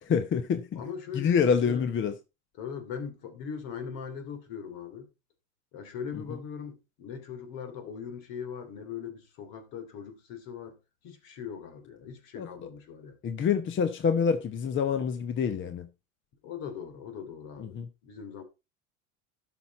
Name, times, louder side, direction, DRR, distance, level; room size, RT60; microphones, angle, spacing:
voice 1, 0.1-0.8 1.1-2.1 6.1-6.2 12.4-12.7 13.2-15.9 17.6-17.9, left 6 dB, 30° left, 0.9 m, -27 dB
voice 2, 0.7-1.9 2.6-5.1 5.7-10.8 11.0-13.2 16.4-18.4, left 7 dB, 60° left, 2.8 m, -40 dB
12.0 x 6.1 x 4.1 m
hypercardioid pair, 95°, 41 cm